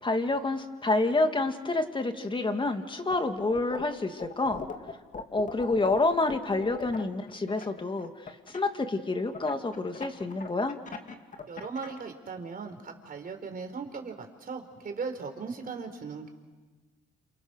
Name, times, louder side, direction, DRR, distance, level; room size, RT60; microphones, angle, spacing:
voice 1, 0.0-4.6 5.3-8.1 8.5-10.8, left 2 dB, 25° left, 6 dB, 2.4 m, -28 dB
sound 1, 3.1-3.9 4.2-8.6 9.3-12.0, left 5 dB, 40° left, 2.5 m, -39 dB
voice 2, 11.5-16.3, right 5 dB, 45° right, 5 dB, 4.3 m, -38 dB
28.5 x 28.0 x 6.5 m, 1.3 s
cardioid pair, 90°, 20 cm